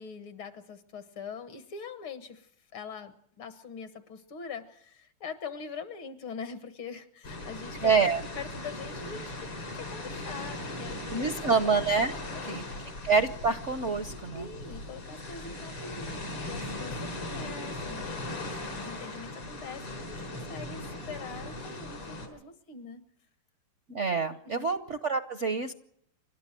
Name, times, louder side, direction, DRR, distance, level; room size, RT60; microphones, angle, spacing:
voice 1, 0.0-9.3 9.7-11.6 12.2-12.8 14.3-23.0 24.5-24.7, left 5 dB, 70° left, 10 dB, 2.4 m, -43 dB
sound 1, 7.2-22.3, left 2 dB, 90° left, 5.7 m, -39 dB
voice 2, 7.8-8.2 11.1-12.6 13.0-14.5 23.9-25.7, right 5 dB, 50° right, 10 dB, 0.9 m, -27 dB
29.5 x 13.0 x 7.6 m, 0.69 s
omnidirectional pair, 2.4 m